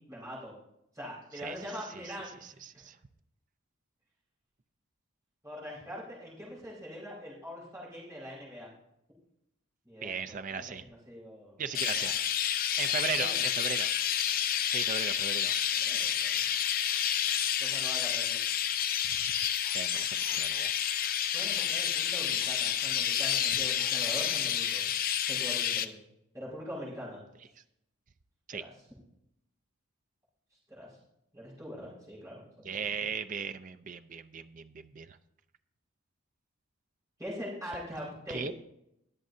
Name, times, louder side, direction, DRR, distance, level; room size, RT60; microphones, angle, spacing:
voice 1, 0.1-0.5 0.9-2.9 5.4-8.7 9.8-10.4 10.7-12.1 13.1-13.5 15.7-16.5 17.6-18.4 21.3-24.9 25.2-26.0 26.3-27.2 28.5-28.8 30.7-31.0 31.3-32.9 37.2-38.5, equal, 15° right, -6 dB, 5.1 m, -43 dB
voice 2, 10.0-10.8 11.6-12.2 12.8-13.9 14.7-15.5 19.7-20.7 21.1-21.2 28.5-28.6 32.6-35.1 38.3-38.5, right 6 dB, 35° right, 10 dB, 0.5 m, -37 dB
Chirp tweet, 11.7-25.9, left 9 dB, 40° left, 0.4 m, -29 dB
21.5 x 7.5 x 2.7 m, 0.80 s
head